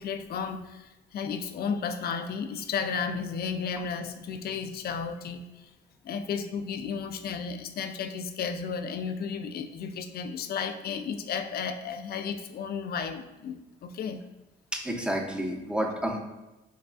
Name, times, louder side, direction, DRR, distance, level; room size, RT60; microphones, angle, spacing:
voice 1, 0.0-5.5 6.0-14.2, left 6 dB, 50° left, 8 dB, 0.4 m, -33 dB
voice 2, 14.7-16.2, equal, 5° right, 2 dB, 0.5 m, -30 dB
4.7 x 2.3 x 2.3 m, 1.0 s
cardioid pair, 90°, 20 cm